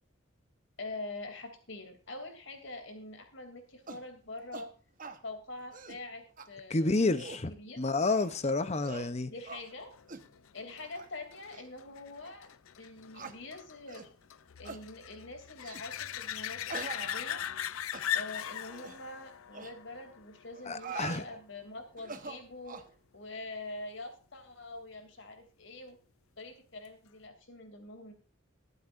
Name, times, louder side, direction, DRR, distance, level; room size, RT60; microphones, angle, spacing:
voice 1, 0.8-4.7 5.2-7.8 9.2-9.9 10.5-12.5 12.8-14.1 14.6-17.4 18.1-22.8 23.1-26.0 26.4-28.1, left 2 dB, 65° left, 2.8 m, -45 dB
sound 1, 3.9-4.1 4.5-4.7 5.0-5.2 5.6-6.0 6.4-6.5 7.0-7.5 8.1-8.4 8.8-9.1 9.4-9.6 10.1-10.3 10.8-11.1 11.5-11.6 12.2-12.3 13.1-13.4 13.9-14.1 14.6-14.8 15.6-15.9 16.7-17.6 17.9-18.1 18.7-19.0 19.5-19.7 20.5-21.2 22.0-22.9, right 4 dB, 40° right, 1.1 m, -44 dB
voice 2, 6.7-7.5 7.8-9.3 20.7-21.2, left 3 dB, 30° left, 0.7 m, -29 dB
sound 2, 9.9-21.2 26.9-27.0, left 10 dB, 85° left, 0.5 m, -40 dB
23.0 x 8.2 x 2.6 m
head